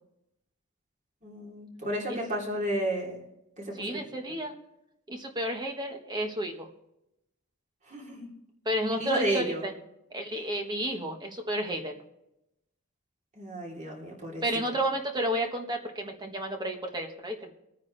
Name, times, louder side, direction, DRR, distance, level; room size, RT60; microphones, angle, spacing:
voice 1, 1.2-3.2 3.6-4.0 7.9-8.3 9.0-9.6 13.3-14.4, right 1 dB, 35° right, -2 dB, 3.4 m, -32 dB
voice 2, 3.7-4.5 5.1-6.7 8.6-9.7 10.1-12.0 14.4-17.5, right 1 dB, 20° right, 3 dB, 1.4 m, -31 dB
23.5 x 9.4 x 3.3 m, 0.87 s
head